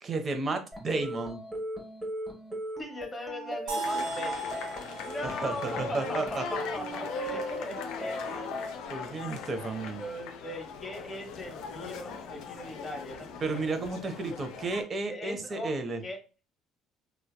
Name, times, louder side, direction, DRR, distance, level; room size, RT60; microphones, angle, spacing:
voice 1, 0.0-1.4 5.2-6.4 8.9-10.0 13.4-16.0, right 3 dB, 40° right, 7 dB, 0.5 m, -32 dB
sound 1, 0.7-8.7, equal, ahead, 1.0 m, -39 dB
voice 2, 2.8-4.6 5.0-8.9 10.0-13.7 14.0-14.1 15.1-15.7 16.0-16.2, left 1 dB, 25° left, 3 dB, 1.0 m, -40 dB
sound 2, 3.7-7.6, right 3 dB, 90° right, 1.2 m, -38 dB
sound 3, 3.8-14.8, left 5 dB, 75° left, 0.4 m, -39 dB
2.6 x 2.1 x 2.2 m, 0.33 s
supercardioid pair, 75°, 0 cm